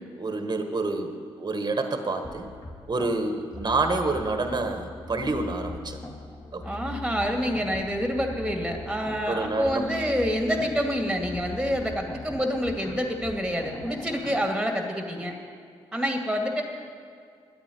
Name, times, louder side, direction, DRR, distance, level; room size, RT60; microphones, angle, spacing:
voice 1, 0.1-2.5 2.9-6.0 6.5-6.7 9.3-9.9, right 3 dB, 35° right, 6 dB, 1.4 m, -28 dB
sound 1, 2.2-14.4, left 2 dB, 30° left, 2.8 m, -40 dB
voice 2, 6.6-15.3 15.9-16.6, equal, ahead, 2 dB, 2.2 m, -27 dB
10.5 x 9.2 x 9.3 m, 2.2 s
supercardioid pair, 50°, 11 cm